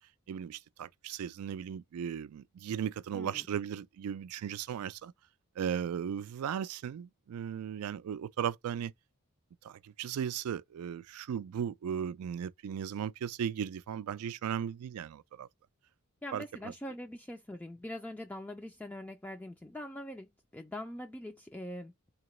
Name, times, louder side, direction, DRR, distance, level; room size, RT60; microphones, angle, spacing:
voice 1, 0.3-5.1 5.6-8.9 9.6-15.5 16.3-16.7, right 8 dB, 80° right, 0.3 m, -36 dB
voice 2, 3.1-3.5 16.2-21.9, left 1 dB, 5° left, 0.3 m, -43 dB
3.8 x 2.9 x 3.0 m
head